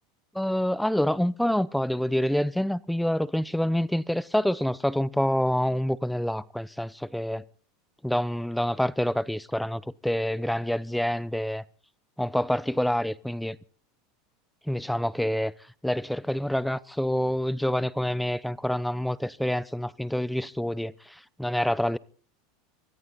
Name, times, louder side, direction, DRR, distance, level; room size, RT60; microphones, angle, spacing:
voice 1, 0.3-7.4 8.0-11.6 12.2-13.6 14.7-15.5 15.8-22.0, equal, ahead, 0.7 m, -27 dB
24.0 x 14.5 x 4.0 m
hypercardioid pair, 105°, 0 cm